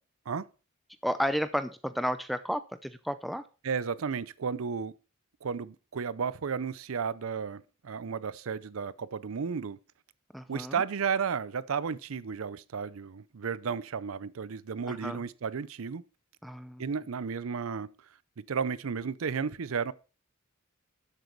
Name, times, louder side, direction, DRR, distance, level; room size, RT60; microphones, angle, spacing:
voice 1, 1.0-3.4 10.3-10.8 14.9-15.2 16.4-16.8, equal, ahead, 0.5 m, -32 dB
voice 2, 3.6-4.9 5.4-9.8 10.5-16.0 16.8-17.9 18.5-19.9, right 6 dB, 75° right, 0.5 m, -33 dB
12.0 x 7.9 x 4.5 m
head